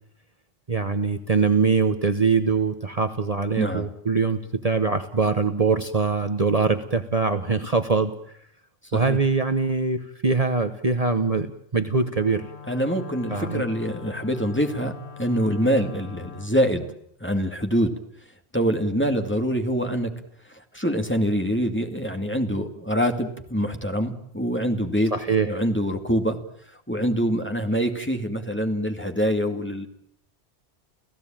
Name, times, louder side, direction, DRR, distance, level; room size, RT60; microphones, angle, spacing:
voice 1, 0.7-8.1 8.9-12.4 13.3-13.6 25.1-25.5, right 4 dB, 35° right, 9 dB, 1.2 m, -23 dB
voice 2, 3.6-3.9 8.9-9.2 12.7-16.9 17.2-17.9 18.5-20.1 20.5-25.1 25.4-26.4 26.9-29.9, equal, 10° left, 5 dB, 2.3 m, -25 dB
Wind instrument woodwind instrument, 12.1-16.6, left 7 dB, 90° left, 1.5 m, -42 dB
29.5 x 16.5 x 9.0 m, 0.71 s
omnidirectional pair, 1.1 m